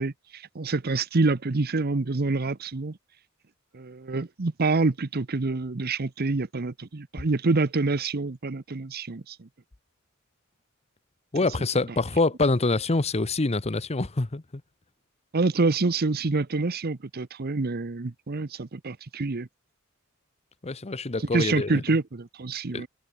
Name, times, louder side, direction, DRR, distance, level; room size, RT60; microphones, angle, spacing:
voice 1, 0.0-3.0 3.7-9.5 15.3-19.5 21.3-22.9, right 3 dB, 50° right, 0.8 m, -27 dB
voice 2, 11.3-14.4 20.6-21.8 22.7-22.8, left 3 dB, 30° left, 0.9 m, -25 dB
head